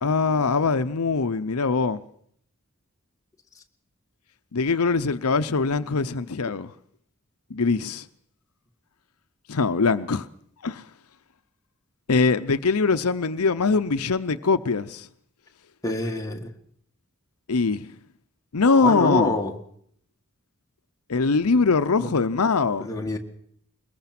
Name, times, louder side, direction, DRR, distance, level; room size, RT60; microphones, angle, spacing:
voice 1, 0.0-2.0 4.5-6.7 7.5-8.1 9.5-10.3 10.6-10.8 12.1-15.1 17.5-17.9 18.5-19.3 21.1-22.9, left 4 dB, 85° left, 0.8 m, -22 dB
voice 2, 15.8-16.5 18.8-19.6 22.0-22.1 22.8-23.2, left 2 dB, 15° left, 1.7 m, -26 dB
22.0 x 20.5 x 6.0 m
head